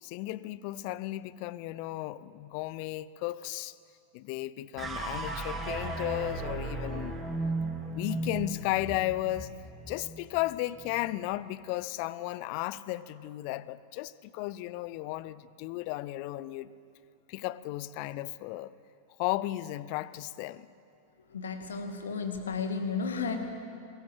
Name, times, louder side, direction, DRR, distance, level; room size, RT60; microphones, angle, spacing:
voice 1, 0.0-3.8 4.1-7.2 7.9-9.5 9.9-16.7 17.3-18.7 19.2-20.7, left 16 dB, 45° left, 0.6 m, -34 dB
sound 1, 4.8-11.1, right 2 dB, 20° right, 3.0 m, -36 dB
voice 2, 21.3-23.4, left 5 dB, 65° left, 2.3 m, -33 dB
22.5 x 21.0 x 7.6 m
figure-of-eight pair, 90°, 0 cm